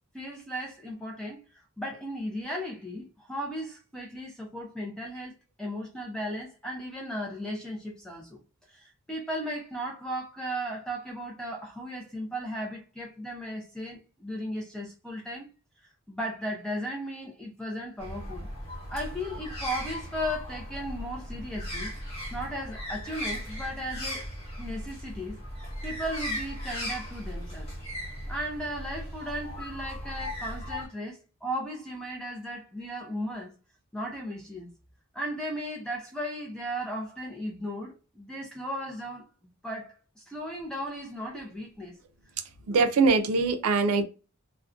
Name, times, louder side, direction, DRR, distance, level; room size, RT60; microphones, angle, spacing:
voice 1, 0.1-1.4 1.8-8.4 8.7-15.5 16.1-18.5 18.9-21.9 22.3-24.3 24.6-25.4 25.8-27.7 28.3-33.5 33.9-34.7 35.1-39.3 39.6-42.0, equal, 5° left, 0.3 m, -36 dB
sound 1, 18.0-30.9, equal, 25° left, 1.0 m, -37 dB
voice 2, 42.7-44.0, right 4 dB, 80° right, 0.4 m, -22 dB
2.4 x 2.1 x 2.4 m
head